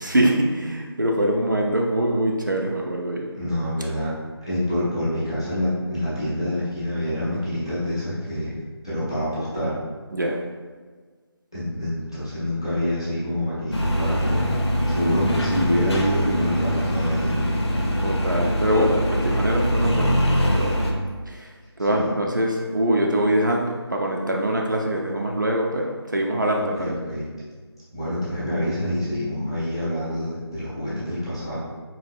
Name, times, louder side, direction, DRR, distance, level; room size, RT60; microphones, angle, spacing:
voice 1, 0.0-3.2 10.1-10.4 18.0-20.8 21.3-21.5 21.8-26.9, right 1 dB, 45° right, 0 dB, 0.4 m, -23 dB
voice 2, 3.3-4.1 4.5-8.5 8.8-9.8 11.5-14.6 14.9-17.6 21.9-22.1 26.6-27.3 27.9-31.6, left 1 dB, 10° left, -13 dB, 0.5 m, -26 dB
sound 1, 13.7-20.9, equal, 80° left, 0.7 m, -23 dB
4.1 x 2.6 x 2.5 m, 1.5 s
figure-of-eight pair, 175°, 14 cm